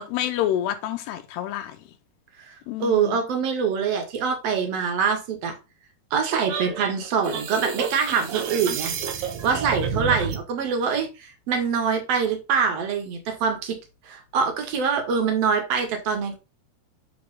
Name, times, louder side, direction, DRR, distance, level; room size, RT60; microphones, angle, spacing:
voice 1, 0.0-1.8 2.7-3.2, left 11 dB, 85° left, 2.8 m, -28 dB
voice 2, 2.8-5.5 6.1-8.9 9.4-11.1 11.5-13.8 14.1-16.4, right 6 dB, 50° right, 2.0 m, -24 dB
sound 1, 6.5-10.4, right 7 dB, 75° right, 1.7 m, -29 dB
8.8 x 3.3 x 5.4 m
omnidirectional pair, 4.8 m